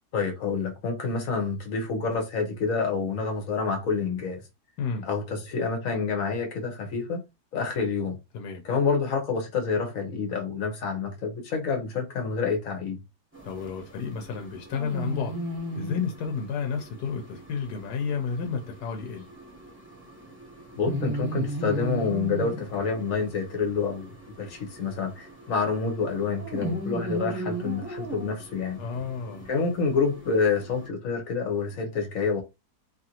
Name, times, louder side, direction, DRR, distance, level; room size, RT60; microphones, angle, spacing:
voice 1, 0.1-4.4 5.1-7.2 7.5-8.2 8.6-13.0 20.7-28.8 29.5-32.4, left 5 dB, 60° left, 1.1 m, -28 dB
sound 1, 13.3-30.9, right 1 dB, 10° right, 0.8 m, -37 dB
voice 2, 13.4-15.3 15.7-19.3 28.8-29.5, left 6 dB, 85° left, 1.2 m, -31 dB
2.9 x 2.5 x 2.8 m
omnidirectional pair, 1.7 m